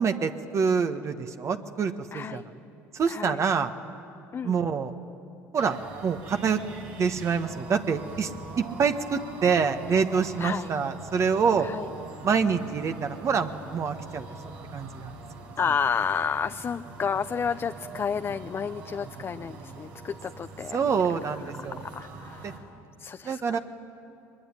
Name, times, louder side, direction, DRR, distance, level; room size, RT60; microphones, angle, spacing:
voice 1, 0.0-2.5 2.9-3.7 4.4-4.9 5.5-6.6 7.0-8.3 8.6-11.7 12.2-14.3 14.7-15.1 20.7-21.8 22.4-22.5 23.2-23.6, right 6 dB, 45° right, 7 dB, 1.3 m, -26 dB
voice 2, 2.1-2.4 3.1-3.4 4.3-4.5 10.4-10.7 11.6-11.9 15.6-20.8 21.9-22.7 23.0-23.6, left 6 dB, 35° left, 10 dB, 0.6 m, -31 dB
sound 1, 5.6-22.6, right 3 dB, 75° right, 4.6 m, -43 dB
22.5 x 21.5 x 10.0 m, 2.7 s
supercardioid pair, 75°, 7 cm